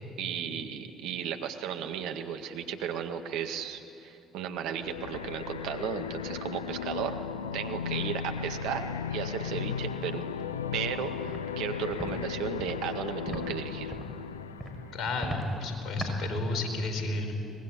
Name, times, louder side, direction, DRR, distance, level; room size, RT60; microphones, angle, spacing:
voice 1, 0.2-7.2 7.5-10.3 10.7-14.0, right 8 dB, 70° right, 6 dB, 1.8 m, -35 dB
sound 1, 4.7-15.2, left 8 dB, 90° left, 0.5 m, -36 dB
Walk footsteps, 11.3-11.4 11.9-12.1 12.6-12.7 13.3-13.4 13.9-14.1 14.6-14.8 15.2-15.4 16.0-16.1, right 1 dB, 5° right, 6.3 m, -37 dB
voice 2, 14.9-17.3, left 2 dB, 55° left, 5 dB, 4.6 m, -31 dB
24.0 x 20.0 x 9.9 m, 2.8 s
hypercardioid pair, 55°, 0 cm